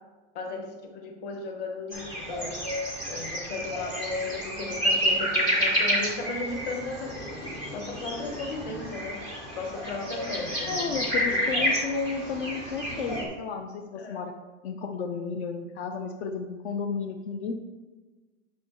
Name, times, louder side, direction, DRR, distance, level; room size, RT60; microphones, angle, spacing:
voice 1, 0.3-2.5 3.1-7.2 7.7-9.2 9.5-10.9 11.3-11.6 13.9-14.2, left 3 dB, 25° left, 3 dB, 0.9 m, -36 dB
sound 1, 1.9-13.2, equal, 10° left, 0.3 m, -29 dB
voice 2, 10.7-14.3 14.6-17.5, left 5 dB, 60° left, 5 dB, 0.6 m, -33 dB
8.5 x 6.1 x 3.1 m, 1.3 s
supercardioid pair, 180°, 38 cm